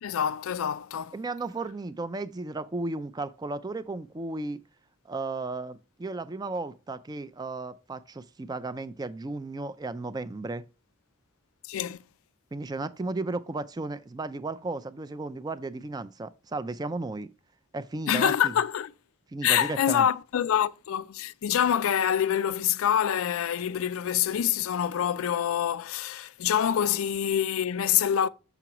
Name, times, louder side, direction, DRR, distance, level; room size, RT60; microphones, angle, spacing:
voice 1, 0.0-1.1 11.7-12.0 18.1-18.9 19.4-28.3, left 9 dB, 80° left, 0.4 m, -26 dB
voice 2, 1.1-4.6 5.1-10.6 12.5-17.3 17.7-18.6 19.3-20.1, right 3 dB, 20° right, 0.3 m, -34 dB
6.8 x 6.0 x 2.9 m
head